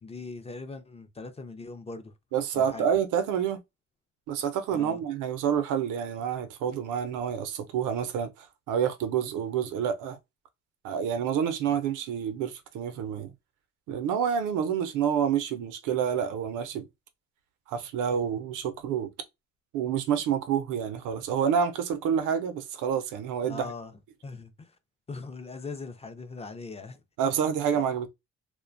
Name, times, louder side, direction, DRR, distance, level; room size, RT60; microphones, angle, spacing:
voice 1, 0.0-2.1 2.5-2.9 4.7-5.0 11.7-11.8 23.5-24.8 25.1-27.0 27.7-27.8, left 4 dB, 20° left, 0.4 m, -41 dB
voice 2, 2.3-3.6 4.3-10.2 10.8-13.3 13.9-16.9 17.7-19.1 19.7-23.7 27.2-28.1, right 8 dB, 90° right, 0.6 m, -28 dB
2.4 x 2.1 x 2.5 m
cardioid pair, 90°, 30 cm